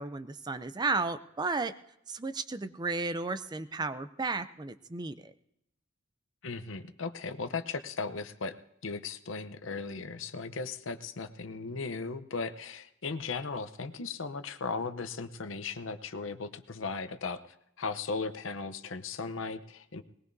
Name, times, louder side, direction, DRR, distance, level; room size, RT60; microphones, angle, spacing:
voice 1, 0.0-1.7 2.1-5.3, right 3 dB, 20° right, 12 dB, 0.5 m, -33 dB
voice 2, 6.4-8.6 8.8-17.4 17.8-20.0, left 4 dB, 80° left, 10 dB, 0.8 m, -37 dB
20.0 x 19.5 x 2.7 m, 0.78 s
head